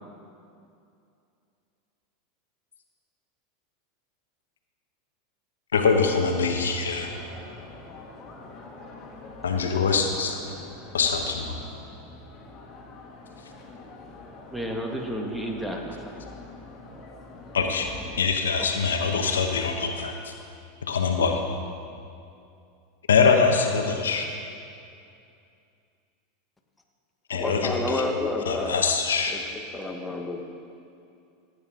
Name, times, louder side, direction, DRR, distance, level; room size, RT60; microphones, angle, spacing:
voice 1, 5.7-7.1 9.4-10.4 10.9-11.5 17.5-17.9 18.2-20.3 20.9-21.4 23.1-24.3 27.3-28.0 28.4-29.3, left 5 dB, 85° left, 4 dB, 1.0 m, -23 dB
sound 1, 6.5-18.2, left 3 dB, 35° left, 2.1 m, -45 dB
voice 2, 9.6-10.1 10.4-10.6 14.5-16.0, equal, ahead, 0 dB, 1.7 m, -33 dB
voice 3, 27.3-28.8 29.3-29.4 29.7-30.4, left 2 dB, 15° left, 3 dB, 1.3 m, -29 dB
16.0 x 8.6 x 3.8 m, 2.5 s
hypercardioid pair, 95°, 0 cm